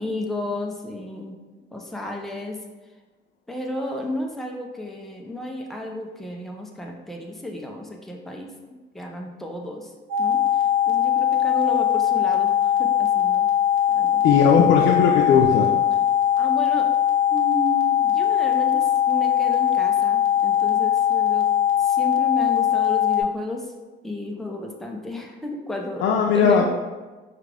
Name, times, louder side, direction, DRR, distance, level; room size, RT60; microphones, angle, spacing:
voice 1, 0.0-1.4 1.7-2.6 3.5-9.9 10.2-10.4 10.9-13.5 13.9-14.2 15.3-15.5 16.4-16.9 17.3-21.5 21.8-23.7 24.0-26.1 26.3-26.6, left 1 dB, ahead, 0 dB, 0.6 m, -32 dB
sound 1, 10.1-23.2, left 10 dB, 85° right, 0.7 m, -20 dB
voice 2, 14.2-15.7 26.0-26.6, left 6 dB, 90° left, -1 dB, 0.5 m, -18 dB
4.6 x 2.5 x 3.3 m, 1.2 s
cardioid pair, 90°, 20 cm